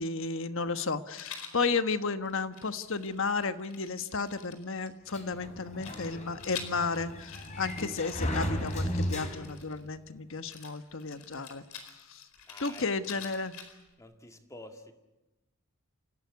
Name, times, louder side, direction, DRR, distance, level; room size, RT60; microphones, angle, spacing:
voice 1, 0.0-11.6 12.1-12.2 12.6-13.5, left 4 dB, 60° left, 10 dB, 1.2 m, -33 dB
Rattle, 1.1-1.6 2.2-4.9 5.8-9.9 10.5-13.9, left 7 dB, 85° left, 4.4 m, -47 dB
Sliding door, 5.1-9.8, equal, 35° left, 3.5 m, -35 dB
voice 2, 12.5-13.4 14.0-14.9, left 1 dB, 15° left, 5 dB, 2.1 m, -50 dB
28.5 x 16.5 x 9.6 m, 1.0 s
head